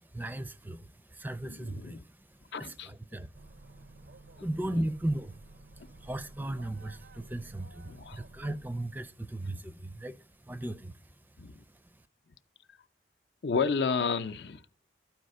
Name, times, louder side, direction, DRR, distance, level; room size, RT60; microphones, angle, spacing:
voice 1, 0.0-11.1 11.5-12.0, right 1 dB, 10° right, 0.4 m, -37 dB
voice 2, 1.5-2.0 2.5-2.9 4.7-4.8 7.9-8.2 11.4-11.6 13.4-14.6, left 5 dB, 75° left, 0.5 m, -32 dB
sound 1, 3.3-9.2, right 2 dB, 70° right, 0.6 m, -53 dB
12.5 x 4.9 x 6.5 m
head